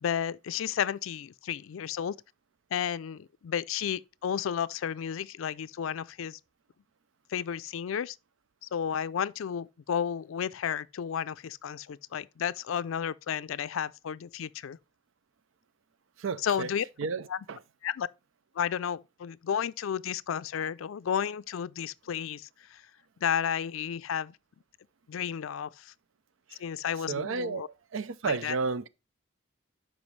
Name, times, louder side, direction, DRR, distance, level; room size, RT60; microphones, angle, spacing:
voice 1, 0.0-2.2 2.7-6.4 7.3-8.2 8.6-14.8 16.4-16.9 17.3-17.4 17.8-18.1 18.6-22.8 23.2-24.4 25.1-25.9 26.6-27.7 28.2-28.6, left 8 dB, 90° left, 0.4 m, -32 dB
voice 2, 16.2-16.7 17.0-17.6 27.1-27.6 27.9-28.9, right 4 dB, 85° right, 0.5 m, -32 dB
12.5 x 5.1 x 3.2 m
head